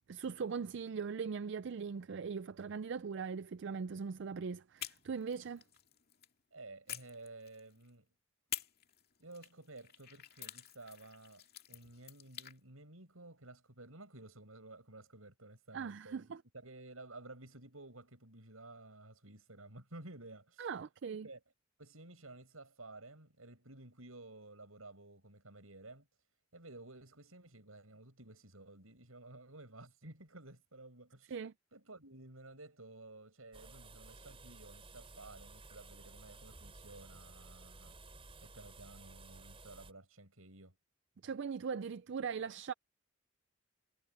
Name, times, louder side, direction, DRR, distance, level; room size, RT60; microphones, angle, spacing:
voice 1, 0.1-5.6 15.7-16.4 20.6-21.3 31.3-31.5 41.2-42.7, right 6 dB, 60° right, 0.4 m, -40 dB
sound 1, 4.8-6.3 6.9-7.9 8.5-12.6, left 12 dB, 50° left, 2.3 m, -48 dB
voice 2, 6.5-8.1 9.2-16.3 16.5-20.7 21.0-21.4 21.8-26.1 26.5-31.4 31.7-38.0 38.4-40.8, right 2 dB, 85° right, 7.8 m, -54 dB
sound 2, 33.5-39.9, right 3 dB, 25° right, 4.6 m, -55 dB
head